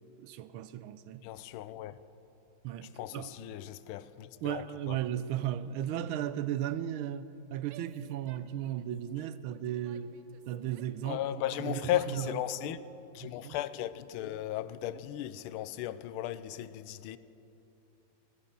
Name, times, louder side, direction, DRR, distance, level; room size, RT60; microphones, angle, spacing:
voice 1, 0.2-1.2 2.6-3.3 4.4-10.1 10.5-11.2 11.6-12.8 13.2-13.6, right 11 dB, 90° right, 1.4 m, -36 dB
voice 2, 1.2-1.9 3.0-5.0 11.0-12.8 13.1-17.2, left 12 dB, 90° left, 1.4 m, -36 dB
Female speech woman speaking / Yell, 7.7-9.0 9.5-11.0 11.4-12.5, right 9 dB, 70° right, 1.3 m, -55 dB
17.5 x 10.5 x 6.8 m
omnidirectional pair, 2.2 m